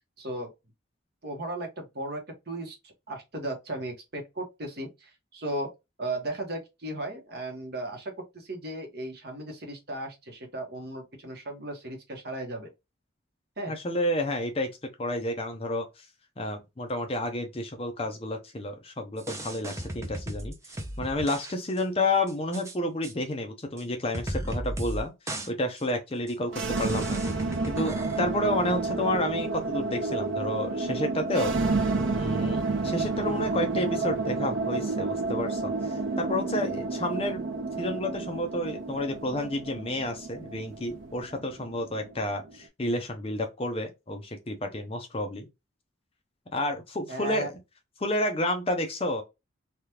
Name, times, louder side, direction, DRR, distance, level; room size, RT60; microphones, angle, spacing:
voice 1, 0.2-0.5 1.2-2.8 3.1-5.7 6.0-12.7 13.6-13.7 47.1-47.5, right 1 dB, 50° right, 1.0 m, -36 dB
voice 2, 13.7-14.7 15.0-15.9 16.4-20.5 21.0-25.1 25.5-27.2 27.7-31.5 32.1-37.4 37.8-45.5 46.5-47.5 48.0-49.2, left 1 dB, 30° left, 0.6 m, -30 dB
sound 1, 19.2-21.5 21.8-21.9 22.3-22.7 23.0-23.1 23.8-23.9 24.1-25.0 25.3-25.5 25.8-25.9 26.3-26.4 26.8-28.2, right 1 dB, 15° right, 0.5 m, -35 dB
sound 2, 26.5-42.5, right 3 dB, 75° right, 0.7 m, -30 dB
3.4 x 2.4 x 2.9 m
head